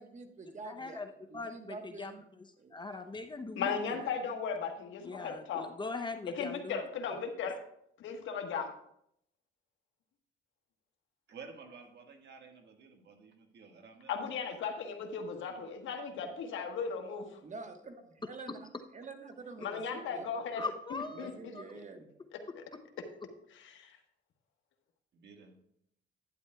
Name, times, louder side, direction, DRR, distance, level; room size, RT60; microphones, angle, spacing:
voice 1, 0.0-1.0 1.3-2.2 2.6-2.8 17.4-18.6 18.9-20.3 21.1-22.1, right 3 dB, 40° right, 6 dB, 1.3 m, -47 dB
voice 2, 0.6-2.1 2.4-3.8 5.0-6.8 7.1-7.2 18.2-18.6 20.6-21.7, left 3 dB, 25° left, 7 dB, 0.7 m, -41 dB
voice 3, 3.6-5.6 6.4-7.6 8.0-8.7 14.1-17.4 19.6-20.6 20.9-21.3 22.5-22.6 23.7-23.9, left 6 dB, 75° left, 4 dB, 1.3 m, -36 dB
voice 4, 11.3-14.1 15.2-15.3 25.1-25.6, right 5 dB, 60° right, 4 dB, 1.6 m, -52 dB
11.0 x 9.4 x 2.3 m, 0.72 s
cardioid pair, 90°, 20 cm